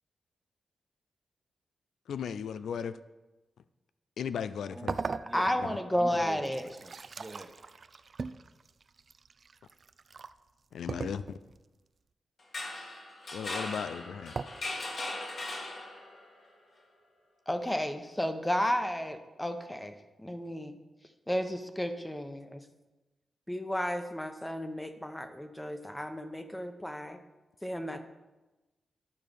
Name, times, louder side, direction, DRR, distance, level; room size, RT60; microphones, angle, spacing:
voice 1, 2.1-2.9 4.2-4.9 5.6-5.8 10.7-11.4 13.3-14.3, left 7 dB, 85° left, 13 dB, 0.3 m, -36 dB
voice 2, 4.7-7.6, right 2 dB, 25° right, 6 dB, 1.0 m, -45 dB
sound 1, 4.9-5.8 6.3-10.3 10.9-11.6 14.4-14.5, right 4 dB, 55° right, 0.4 m, -39 dB
voice 3, 5.3-6.7 17.5-20.8 21.3-22.6 23.5-27.2 27.6-28.0, equal, 10° left, 8 dB, 0.9 m, -32 dB
sound 2, 12.4-16.3, left 2 dB, 60° left, 1.9 m, -39 dB
11.0 x 4.7 x 5.2 m, 1.1 s
cardioid pair, 70°, 0 cm